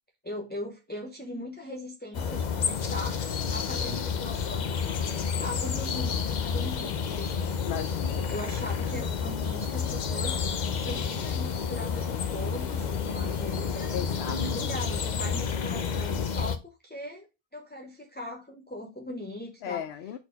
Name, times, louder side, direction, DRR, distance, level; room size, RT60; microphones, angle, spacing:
voice 1, 0.2-7.6 8.3-17.3 17.5-19.8, left 1 dB, 10° left, 0.8 m, -40 dB
sound 1, 2.1-16.6, left 6 dB, 50° left, 0.7 m, -30 dB
voice 2, 7.6-8.3 13.9-14.7 19.6-20.2, left 9 dB, 90° left, 0.8 m, -36 dB
4.4 x 4.2 x 5.1 m
omnidirectional pair, 1.0 m